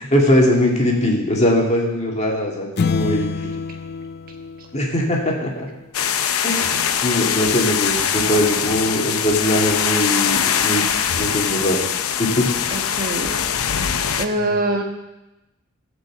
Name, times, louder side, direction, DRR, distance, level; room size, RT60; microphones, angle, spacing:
voice 1, 0.0-3.3 4.7-5.7 6.4-10.8 11.2-11.8 12.2-12.5, left 1 dB, 30° left, -1 dB, 2.1 m, -20 dB
sound 1, 2.8-5.4, left 5 dB, 50° left, 0.4 m, -26 dB
sound 2, 5.9-14.3, left 8 dB, 85° left, 0.7 m, -22 dB
voice 2, 12.7-13.4 14.2-14.8, right 1 dB, 40° right, 2 dB, 1.4 m, -24 dB
16.0 x 5.4 x 7.6 m, 0.98 s
head